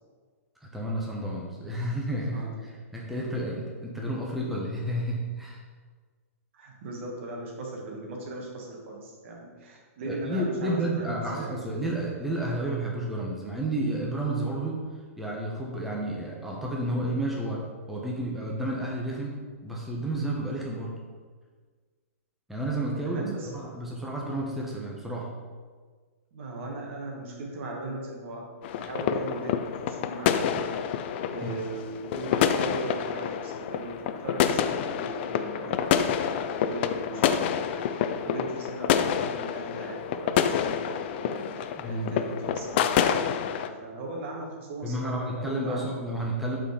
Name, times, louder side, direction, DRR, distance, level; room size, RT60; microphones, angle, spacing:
voice 1, 0.6-5.6 10.1-14.8 15.2-20.9 22.5-23.2 23.5-25.3 31.4-31.5 41.8-42.1 44.8-46.6, right 1 dB, ahead, -4 dB, 0.9 m, -31 dB
voice 2, 2.3-2.8 6.5-11.5 23.0-23.6 26.3-28.5 28.8-31.0 31.3-45.9, right 2 dB, 55° right, 0 dB, 1.6 m, -38 dB
sound 1, 28.6-43.7, left 8 dB, 45° left, 0.4 m, -28 dB
5.2 x 4.4 x 4.8 m, 1.5 s
hypercardioid pair, 120°, 8 cm